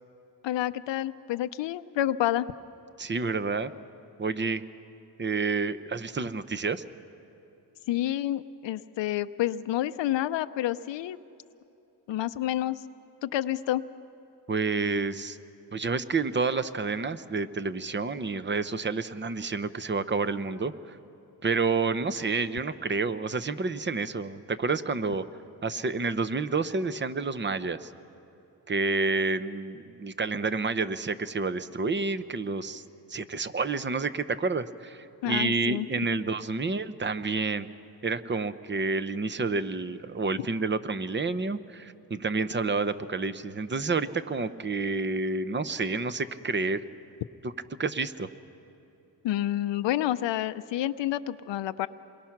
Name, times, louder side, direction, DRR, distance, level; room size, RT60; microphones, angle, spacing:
voice 1, 0.4-2.5 7.9-11.2 12.1-12.8 13.2-13.8 35.2-35.9 49.2-51.9, left 13 dB, 80° left, 11 dB, 0.6 m, -29 dB
voice 2, 3.0-3.7 4.2-4.6 5.2-6.8 14.5-15.4 15.7-21.0 21.4-25.2 25.6-27.9 28.7-32.8 33.1-37.7 38.0-46.8 47.8-48.3, right 4 dB, 25° right, 13 dB, 0.8 m, -29 dB
28.0 x 22.5 x 5.9 m, 2.9 s
cardioid pair, 95°, 43 cm